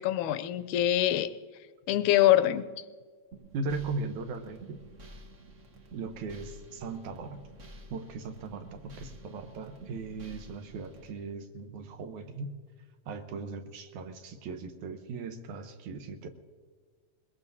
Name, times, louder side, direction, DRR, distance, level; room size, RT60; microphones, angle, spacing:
voice 1, 0.0-1.3 1.9-2.7, left 13 dB, 85° left, 12 dB, 2.0 m, -24 dB
sound 1, 3.3-11.1, right 1 dB, 65° right, 0.7 m, -50 dB
voice 2, 3.5-4.8 5.9-7.5 7.9-12.5 13.1-16.3, right 3 dB, 80° right, 7 dB, 2.4 m, -38 dB
21.5 x 21.5 x 2.7 m, 1.5 s
omnidirectional pair, 3.4 m